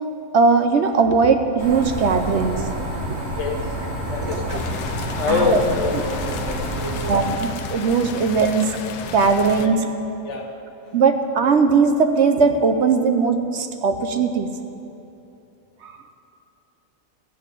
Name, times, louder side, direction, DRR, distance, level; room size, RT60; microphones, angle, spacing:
voice 1, 0.3-2.6 4.5-4.6 5.3-5.6 5.9-6.1 7.1-8.8 9.1-9.9 10.9-14.5 15.8-15.9, right 5 dB, 60° right, 7 dB, 0.8 m, -19 dB
sound 1, 1.6-7.3, right 1 dB, 45° right, 2.0 m, -28 dB
voice 2, 4.1-4.6 5.1-7.2 9.5-9.8 10.2-10.5, left 4 dB, 50° left, 2 dB, 1.3 m, -25 dB
sound 2, 4.5-9.7, left 7 dB, 90° left, 1.2 m, -34 dB
13.0 x 5.5 x 9.0 m, 2.8 s
omnidirectional pair, 1.6 m